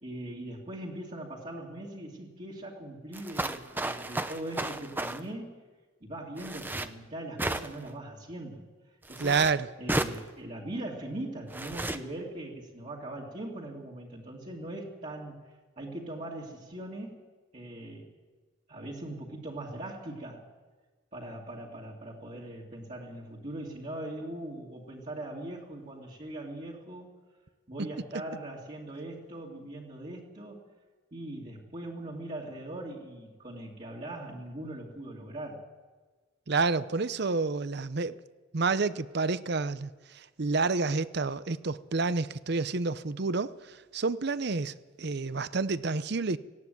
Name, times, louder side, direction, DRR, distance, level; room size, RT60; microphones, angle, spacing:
voice 1, 0.0-5.6 6.0-8.6 9.1-9.4 9.8-15.4 15.8-17.2 17.5-18.1 18.7-20.4 21.1-27.1 27.7-30.6 31.1-35.6, right 1 dB, 35° right, 2.5 m, -40 dB
sound 1, 3.1-5.2 6.4-6.9 7.4-7.9 9.0-9.5 9.9-10.2 11.5-12.0, right 1 dB, 10° right, 0.7 m, -33 dB
voice 2, 9.2-9.7 36.5-38.2 38.5-46.4, right 4 dB, 50° right, 0.6 m, -29 dB
18.0 x 15.5 x 9.4 m
head